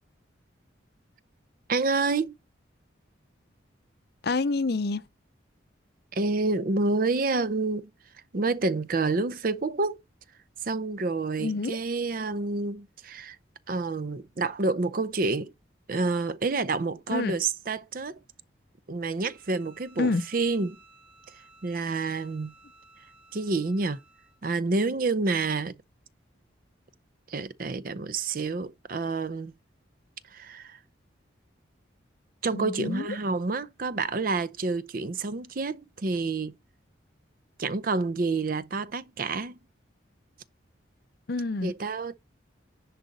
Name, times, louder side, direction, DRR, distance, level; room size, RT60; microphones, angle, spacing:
voice 1, 1.7-2.3 6.1-7.9 8.3-10.0 10.6-13.4 13.7-15.5 15.9-18.2 18.9-20.8 21.6-22.5 23.3-24.0 24.4-25.8 27.3-29.5 30.3-30.8 32.4-36.6 37.6-39.6 41.6-42.1, right 3 dB, 45° right, 0.5 m, -28 dB
voice 2, 4.2-5.0 11.4-11.8 17.1-17.4 20.0-20.2 32.5-33.2 41.3-41.7, left 3 dB, 55° left, 0.6 m, -27 dB
Bowed string instrument, 19.2-24.4, right 2 dB, 65° right, 3.8 m, -57 dB
10.0 x 4.0 x 4.1 m
head